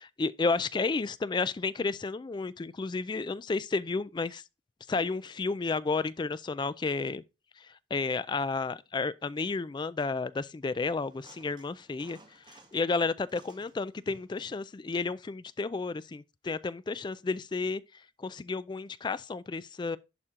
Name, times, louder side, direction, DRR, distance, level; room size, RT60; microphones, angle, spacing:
voice 1, 0.0-4.4 4.9-7.2 7.9-12.2 12.5-17.8 18.2-20.0, left 4 dB, 25° left, 0.3 m, -32 dB
sound 1, 11.0-12.9 13.3-14.4 16.0-16.1, right 2 dB, 25° right, 1.4 m, -56 dB
11.0 x 4.4 x 3.7 m
head